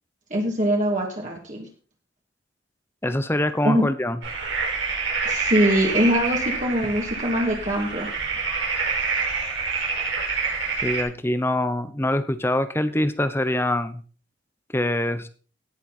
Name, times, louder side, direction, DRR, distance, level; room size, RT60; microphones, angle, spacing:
voice 1, 0.3-1.7 3.6-3.9 5.2-8.1, equal, 40° right, -1 dB, 2.8 m, -23 dB
voice 2, 3.0-4.2 10.8-14.0 14.7-15.3, left 1 dB, 10° left, 11 dB, 0.9 m, -24 dB
sound 1, 4.2-11.0, right 4 dB, 75° right, 4.8 m, -27 dB
17.5 x 7.0 x 4.3 m, 0.39 s
head